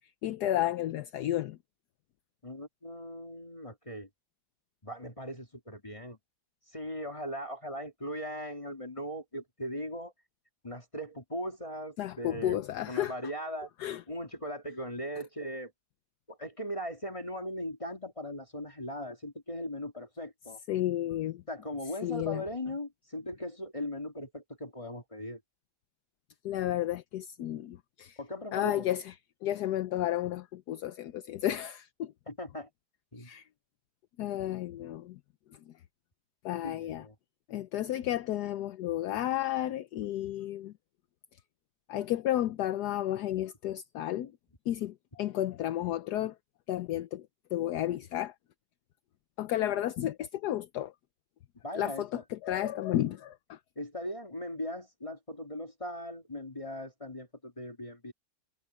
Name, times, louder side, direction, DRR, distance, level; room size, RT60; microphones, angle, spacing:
voice 1, 0.2-1.6 12.0-13.2 13.8-14.0 20.7-21.4 22.0-22.4 26.4-28.2 28.5-29.1 29.4-32.1 33.2-33.5 34.2-35.2 36.4-37.0 37.5-40.7 41.9-44.3 44.7-46.3 46.7-47.3 47.5-48.3 49.4-50.9 51.7-53.6, left 13 dB, 70° left, 1.2 m, -32 dB
voice 2, 2.4-4.1 4.8-6.2 6.7-10.1 10.6-13.7 14.1-15.7 16.3-20.6 21.5-25.4 28.2-28.9 32.3-32.7 33.1-33.3 36.6-37.1 51.6-52.2 53.8-58.1, equal, 20° left, 2.4 m, -39 dB
omnidirectional pair, 1.9 m